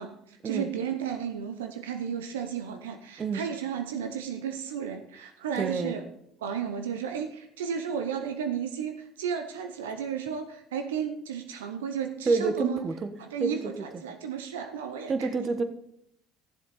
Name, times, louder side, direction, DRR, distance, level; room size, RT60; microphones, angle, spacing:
voice 1, 0.0-6.0 6.4-12.9 13.2-15.4, right 7 dB, 85° right, 6 dB, 0.7 m, -33 dB
voice 2, 5.6-6.0 12.3-13.1 13.4-13.6 15.1-15.6, right 4 dB, 35° right, 9 dB, 1.2 m, -28 dB
13.5 x 7.4 x 4.2 m, 0.76 s
hypercardioid pair, 70°, 0 cm